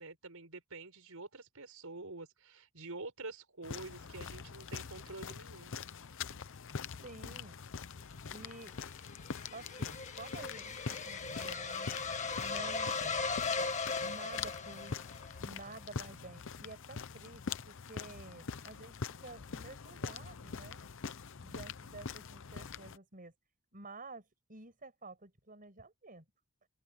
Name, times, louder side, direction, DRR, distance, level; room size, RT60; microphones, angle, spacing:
voice 1, 0.0-5.7, right 3 dB, 75° right, 5.3 m, -47 dB
sound 1, 3.6-23.0, left 5 dB, 60° left, 0.7 m, -44 dB
voice 2, 7.0-7.6 8.3-8.7 9.5-13.5 14.0-15.0 15.4-20.8 21.4-23.3 23.7-24.2 24.5-26.2, right 3 dB, 40° right, 7.0 m, -51 dB
sound 2, 8.5-15.4, left 4 dB, 35° left, 2.1 m, -38 dB
open air
head